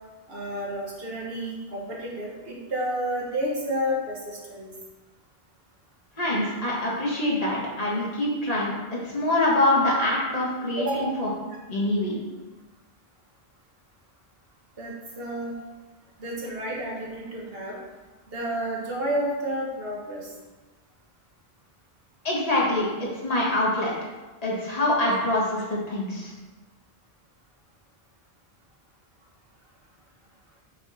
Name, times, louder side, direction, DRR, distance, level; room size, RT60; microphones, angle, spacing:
voice 1, 0.3-4.7 10.8-11.2 14.8-15.5 16.2-17.8 18.3-20.3, equal, 70° right, -3 dB, 1.7 m, -30 dB
voice 2, 6.2-11.3 11.7-12.2 22.2-23.9 24.4-26.3, left 1 dB, 40° left, -5 dB, 1.7 m, -25 dB
6.6 x 4.9 x 4.2 m, 1.2 s
omnidirectional pair, 1.0 m